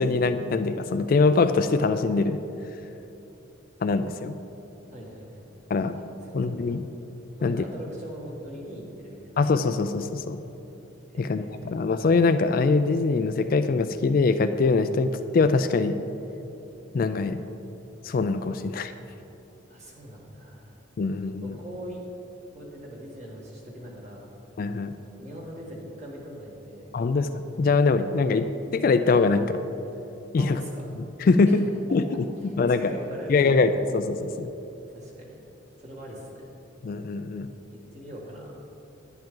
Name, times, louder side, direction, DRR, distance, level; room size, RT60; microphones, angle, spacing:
voice 1, 0.0-2.4 3.8-4.3 5.7-5.9 6.3-6.8 7.4-7.6 9.4-10.4 11.2-16.0 16.9-17.4 18.0-18.9 21.0-21.6 24.6-24.9 26.9-28.5 28.7-29.6 30.3-30.6 31.2-31.6 31.9-32.2 32.6-32.9 33.3-34.5 36.8-37.5, left 4 dB, 50° left, 10 dB, 0.3 m, -23 dB
voice 2, 4.9-5.5 6.3-6.8 7.4-9.3 11.1-11.7 19.7-20.7 21.4-22.0 22.5-24.3 25.0-26.9 30.4-30.9 31.5-31.7 32.4-33.5 34.9-35.4 35.8-36.5 37.7-38.6, equal, 35° right, -3 dB, 1.9 m, -41 dB
10.5 x 10.0 x 3.8 m, 2.9 s
head